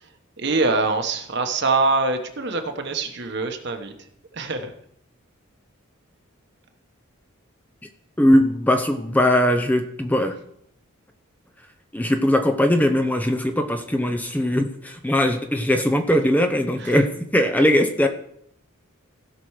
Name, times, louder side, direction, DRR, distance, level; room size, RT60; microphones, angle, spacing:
voice 1, 0.4-3.9 4.3-4.7 16.8-17.0, right 3 dB, 55° right, 6 dB, 1.2 m, -24 dB
voice 2, 8.2-10.3 11.9-18.1, left 1 dB, 10° left, 6 dB, 0.6 m, -20 dB
16.0 x 6.0 x 4.8 m, 0.72 s
head